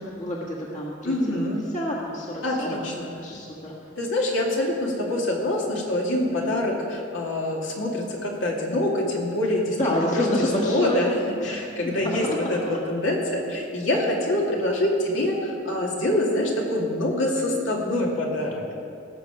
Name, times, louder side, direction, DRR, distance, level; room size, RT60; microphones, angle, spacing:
voice 1, 0.2-1.1 1.7-3.7 9.8-11.0 11.4-12.8, left 1 dB, 40° left, -4 dB, 1.7 m, -28 dB
voice 2, 1.0-1.6 2.4-3.1 4.0-18.7, left 1 dB, 70° left, -2 dB, 2.2 m, -25 dB
18.0 x 6.8 x 5.9 m, 2.5 s
head